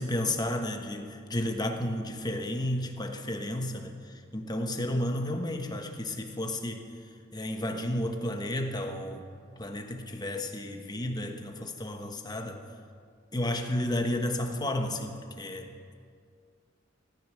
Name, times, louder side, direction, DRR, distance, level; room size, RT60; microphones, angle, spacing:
voice 1, 0.0-6.8 7.3-9.2 9.6-12.6 13.3-15.9, left 1 dB, 20° left, 5 dB, 1.2 m, -32 dB
14.0 x 13.0 x 6.5 m, 2.2 s
head